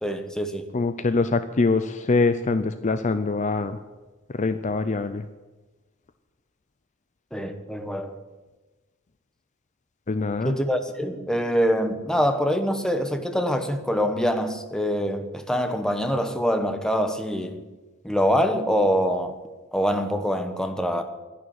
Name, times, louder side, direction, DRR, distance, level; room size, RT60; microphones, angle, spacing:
voice 1, 0.0-0.6 7.3-8.1 10.4-17.6 18.0-19.4 19.7-21.0, equal, 5° left, 7 dB, 1.0 m, -24 dB
voice 2, 0.7-3.8 4.3-5.3 10.1-10.5, left 3 dB, 35° left, 11 dB, 0.5 m, -24 dB
12.0 x 11.0 x 9.0 m, 1.2 s
head